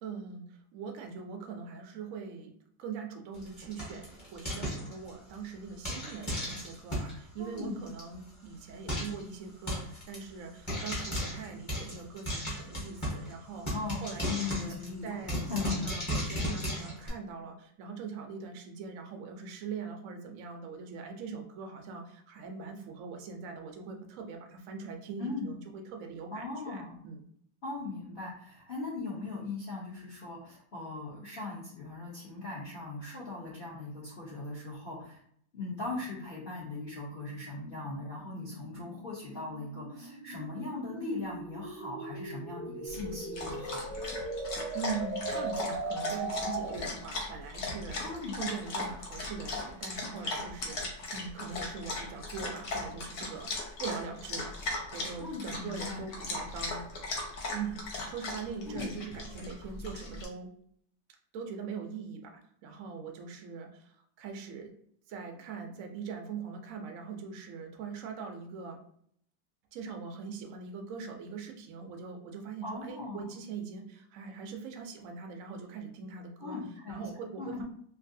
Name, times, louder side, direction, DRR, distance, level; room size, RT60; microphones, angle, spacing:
voice 1, 0.0-0.4 0.7-2.5 2.8-13.7 14.0-14.8 15.0-27.2 44.7-48.0 48.4-50.9 51.1-54.6 54.9-56.8 57.5-60.5 61.3-64.7 65.1-68.8 69.7-76.6 76.9-77.6, right 5 dB, 85° right, 3 dB, 0.7 m, -42 dB
Frying (food), 3.3-5.3 5.8-7.2 7.6-7.7 7.9-8.0 8.3-8.4 8.9-9.2 9.7-10.2 10.7-13.3 13.7-17.1, equal, 25° left, 0.7 m, -35 dB
voice 2, 7.4-7.8 13.7-14.0 14.3-15.2 15.5-15.9 25.2-25.5 26.3-27.0 27.6-35.2 35.5-44.0 48.0-48.4 55.2-56.0 58.7-58.9 72.6-73.4 76.4-77.1 77.4-77.6, left 3 dB, 80° left, -7 dB, 0.5 m, -39 dB
sound 1, 35.8-47.0, right 2 dB, 35° right, 0.5 m, -39 dB
Dog, 42.9-60.2, left 2 dB, 60° left, 1.1 m, -38 dB
3.1 x 2.6 x 2.6 m, 0.65 s
omnidirectional pair, 2.1 m